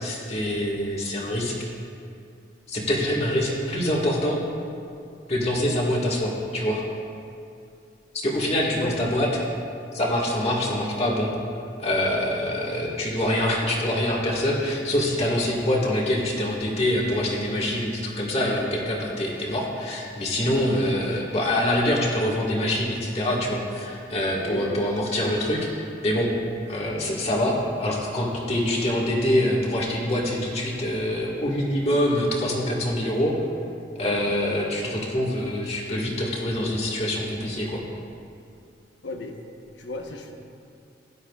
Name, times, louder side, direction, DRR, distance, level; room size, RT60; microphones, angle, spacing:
voice 1, 0.0-1.6 2.7-4.4 5.3-6.8 8.1-9.3 9.9-11.3 11.8-26.3 26.7-33.4 34.0-37.8, left 1 dB, 35° left, -4 dB, 1.7 m, -25 dB
voice 2, 24.4-24.8 39.0-39.4 39.8-40.3, left 2 dB, 75° left, 2 dB, 1.1 m, -34 dB
16.5 x 11.5 x 2.4 m, 2.5 s
head